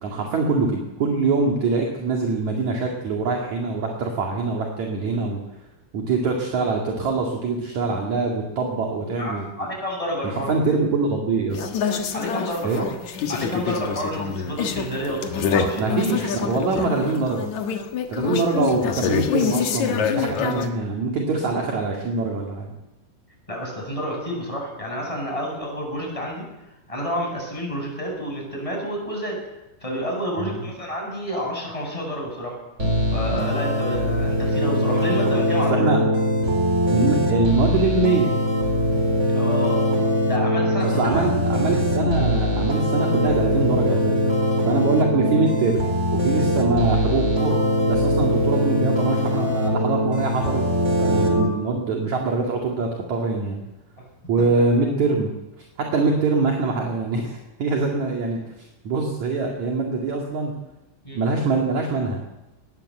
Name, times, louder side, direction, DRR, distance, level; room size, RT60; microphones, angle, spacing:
voice 1, 0.0-5.4 5.9-9.5 10.2-11.6 12.6-12.8 15.7-17.5 18.1-22.7 30.4-30.6 35.7-36.0 36.9-38.4 40.8-44.3 44.7-45.8 46.1-50.6 51.0-53.6 54.3-60.5 61.1-62.2, right 3 dB, 45° right, 0 dB, 2.7 m, -24 dB
voice 2, 9.2-10.5 12.1-12.9 13.3-16.0 23.5-26.4 26.9-29.4 29.8-32.6 33.1-35.7 39.3-39.8 40.3-41.3 61.0-61.2, equal, 5° left, -1 dB, 7.4 m, -29 dB
sound 1, 11.5-20.7, left 7 dB, 75° left, 1.7 m, -26 dB
sound 2, 32.8-51.4, equal, 15° right, 3.2 m, -22 dB
21.0 x 19.0 x 7.9 m, 0.95 s
omnidirectional pair, 6.0 m